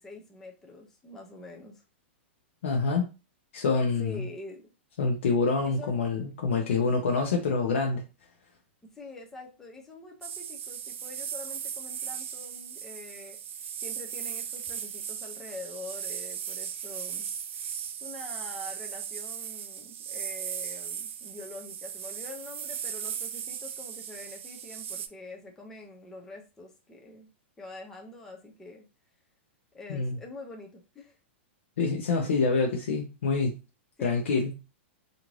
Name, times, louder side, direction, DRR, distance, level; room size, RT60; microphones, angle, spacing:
voice 1, 0.0-1.8 4.0-4.6 5.6-6.0 8.8-13.4 13.8-17.3 17.6-17.7 18.0-27.3 27.6-28.9 29.7-31.2 34.0-34.4, left 2 dB, 5° left, 0.4 m, -45 dB
voice 2, 2.6-3.1 3.5-4.2 5.0-8.0 29.9-30.2 31.8-33.6 34.0-34.5, left 4 dB, 80° left, 0.7 m, -26 dB
sound 1, 10.2-25.1, right 8 dB, 85° right, 0.4 m, -37 dB
2.5 x 2.5 x 3.1 m
supercardioid pair, 165°, 7 cm